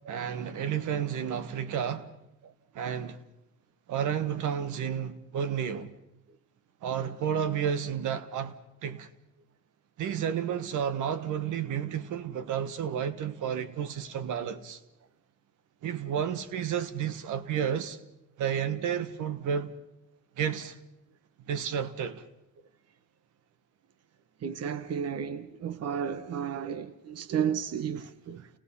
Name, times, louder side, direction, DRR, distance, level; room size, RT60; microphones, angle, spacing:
voice 1, 0.1-2.1 2.7-3.2 3.9-5.9 6.8-8.6 8.8-9.1 10.0-14.8 15.8-18.0 18.4-19.7 20.4-20.8 21.5-22.2, right 8 dB, 80° right, 1.5 m, -31 dB
voice 2, 24.4-28.5, right 8 dB, 55° right, 1.1 m, -33 dB
30.0 x 19.5 x 5.6 m
cardioid pair, 90°, 30 cm